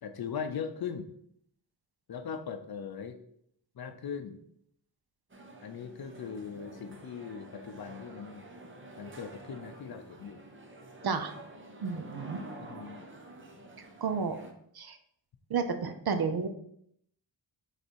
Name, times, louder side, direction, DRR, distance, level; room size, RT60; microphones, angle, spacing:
voice 1, 0.0-1.1 2.1-3.2 3.8-4.4 5.6-8.4 9.0-10.4 12.6-13.1, left 6 dB, 55° left, 8 dB, 0.6 m, -39 dB
sound 1, 5.3-14.5, right 2 dB, 25° right, 0.8 m, -48 dB
voice 2, 11.8-12.4 14.0-14.4 14.8-15.0 15.5-16.5, right 5 dB, 55° right, 8 dB, 0.7 m, -31 dB
5.5 x 4.1 x 4.5 m, 0.69 s
wide cardioid pair, 140°, 44 cm